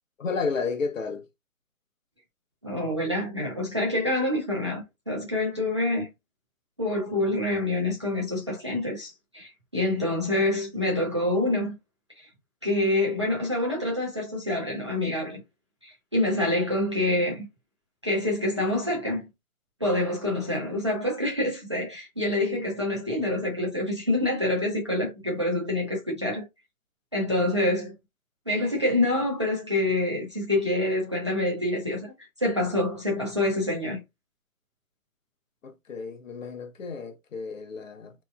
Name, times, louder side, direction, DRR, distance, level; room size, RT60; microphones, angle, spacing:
voice 1, 0.2-1.2 35.6-38.1, left 5 dB, 65° left, 0.7 m, -32 dB
voice 2, 2.6-6.1 6.8-11.7 12.6-15.4 15.8-17.5 18.0-19.3 19.8-26.4 27.1-27.9 28.5-32.1 32.4-34.0, left 1 dB, 20° right, 0.4 m, -26 dB
2.8 x 2.1 x 2.2 m
figure-of-eight pair, 140°, 42 cm